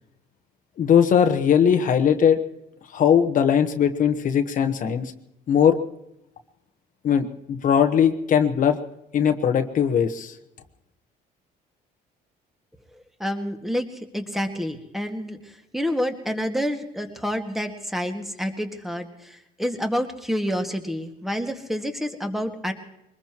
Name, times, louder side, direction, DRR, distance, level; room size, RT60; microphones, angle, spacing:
voice 1, 0.8-2.4 2.9-5.1 5.5-5.8 7.0-8.8 9.1-10.3, left 8 dB, 50° left, 6 dB, 1.2 m, -19 dB
voice 2, 13.2-15.4 15.7-22.7, equal, ahead, 5 dB, 1.8 m, -28 dB
23.5 x 20.5 x 3.0 m, 0.86 s
cardioid pair, 110°, 17 cm